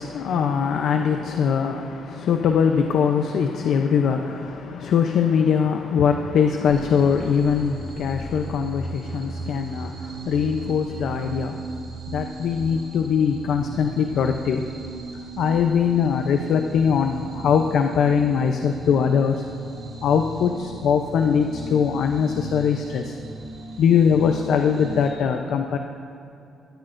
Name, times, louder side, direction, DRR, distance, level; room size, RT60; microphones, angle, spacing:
voice 1, 0.0-11.8 12.1-14.6 15.4-19.4 20.0-20.6 20.8-23.2 23.8-25.8, left 7 dB, 70° left, 5 dB, 0.7 m, -22 dB
sound 1, 6.6-25.1, right 2 dB, 50° right, 2.7 m, -37 dB
20.5 x 14.0 x 2.6 m, 2.6 s
cardioid pair, 90°, 0 cm